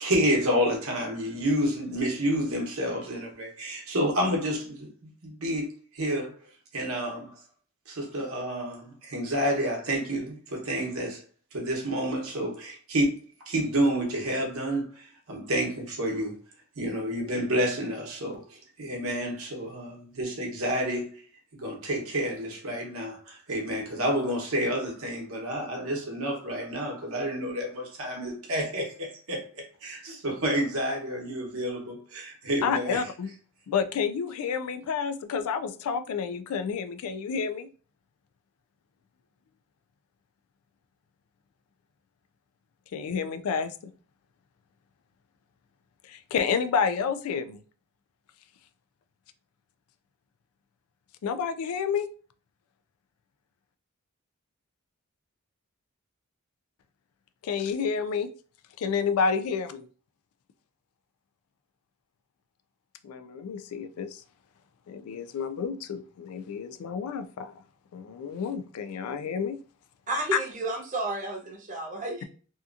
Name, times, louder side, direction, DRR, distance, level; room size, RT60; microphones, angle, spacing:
voice 1, 0.0-4.6 5.4-5.6 6.0-6.2 6.7-7.2 8.0-8.7 9.1-10.2 10.7-11.1 11.5-12.5 12.9-13.1 13.5-14.8 15.3-15.7 16.0-16.3 16.8-18.3 18.8-19.8 20.2-21.0 21.6-23.1 23.5-27.7 28.0-28.8 29.3-29.4 29.8-30.0 30.2-31.9 32.5-33.0, equal, 70° right, 0.9 m, -28 dB
voice 2, 32.6-33.3 33.7-37.7 42.9-43.7 46.1-47.6 51.2-52.1 57.4-58.3 58.8-59.9 63.0-64.2 64.9-67.5 67.9-69.6 70.3-70.4, left 6 dB, 80° left, 0.3 m, -29 dB
voice 3, 70.1-72.2, right 2 dB, 35° right, 0.6 m, -32 dB
2.7 x 2.4 x 2.4 m
head